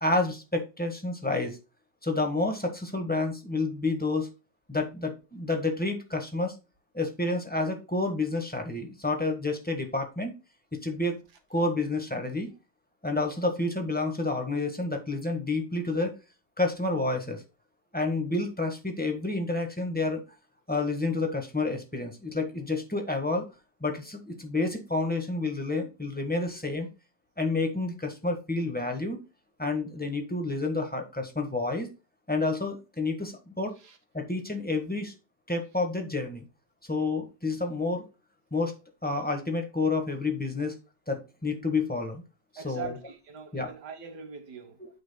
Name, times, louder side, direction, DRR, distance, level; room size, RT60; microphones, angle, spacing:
voice 1, 0.0-1.6 2.0-4.3 4.7-6.5 6.9-10.3 10.7-11.2 11.5-12.5 13.0-16.1 16.6-17.4 17.9-20.2 20.7-23.5 23.8-26.9 27.4-29.2 29.6-31.9 32.3-33.7 34.1-35.1 35.5-36.4 36.9-38.0 38.5-38.7 39.0-40.8 41.1-42.2 42.5-43.0 43.5-43.7 44.8-44.9, left 2 dB, 5° left, 1.3 m, -29 dB
voice 2, 42.6-44.8, right 6 dB, 65° right, 1.8 m, -42 dB
8.7 x 6.5 x 2.2 m
omnidirectional pair, 1.9 m